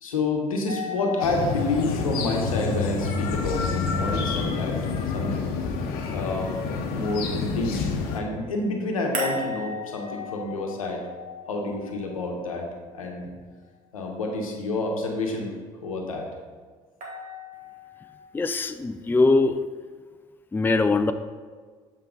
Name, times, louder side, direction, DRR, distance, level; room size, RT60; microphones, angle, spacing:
voice 1, 0.0-4.8 5.1-5.5 6.1-6.5 6.9-7.8 8.1-11.0 11.5-12.7 12.9-13.3 13.9-15.6 15.8-16.3, left 2 dB, 90° left, 2 dB, 0.9 m, -28 dB
sound 1, 0.7-5.6 9.1-13.2 17.0-18.2, left 3 dB, 55° right, 1.6 m, -38 dB
sound 2, 1.2-8.2, left 5 dB, 65° left, 0.8 m, -28 dB
voice 2, 18.3-19.6 20.5-21.1, left 3 dB, 10° left, 10 dB, 0.4 m, -21 dB
7.6 x 4.5 x 3.8 m, 1.5 s
hypercardioid pair, 60°, 17 cm